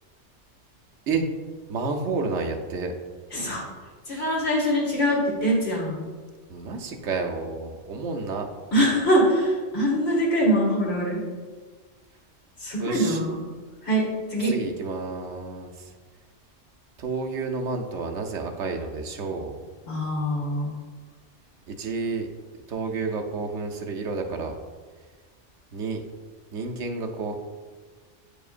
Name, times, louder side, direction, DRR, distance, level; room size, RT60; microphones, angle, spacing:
voice 1, 1.7-2.9 4.1-4.3 6.5-8.5 12.8-13.2 14.4-15.9 17.0-19.6 21.7-22.3 22.7-24.5 25.7-26.0 26.5-27.4, right 4 dB, 75° right, 3 dB, 1.0 m, -30 dB
voice 2, 3.3-3.6 4.1-6.1 8.7-11.2 12.6-13.4 13.8-14.0 14.3-14.5 19.9-20.7, equal, 60° left, -5 dB, 1.9 m, -23 dB
8.6 x 5.0 x 2.5 m, 1.4 s
omnidirectional pair, 1.2 m